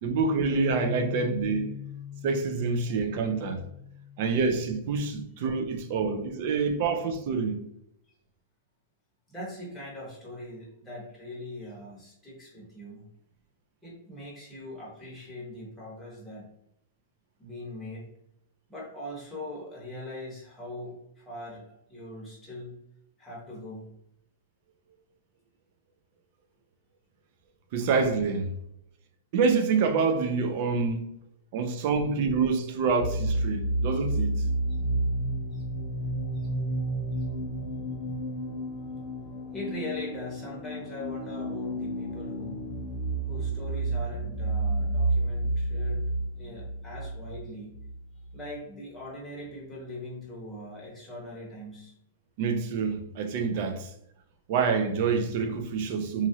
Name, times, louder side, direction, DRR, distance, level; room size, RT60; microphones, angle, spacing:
voice 1, 0.0-1.7 2.2-3.6 4.2-7.6 27.7-28.5 29.3-31.0 31.5-34.3 52.4-53.9 54.5-56.3, right 5 dB, 45° right, 0.4 m, -27 dB
sound 1, 0.5-6.8, left 9 dB, 60° left, 0.5 m, -42 dB
voice 2, 9.3-13.0 13.8-16.5 17.4-18.1 18.7-22.8 23.2-23.9 35.5-35.6 39.5-42.6 43.3-46.0 46.4-47.7 48.3-51.9, left 1 dB, 5° left, 1.0 m, -41 dB
sound 2, 33.0-48.5, right 1 dB, 35° left, 0.9 m, -31 dB
3.0 x 2.5 x 2.7 m
supercardioid pair, 155°, 0 cm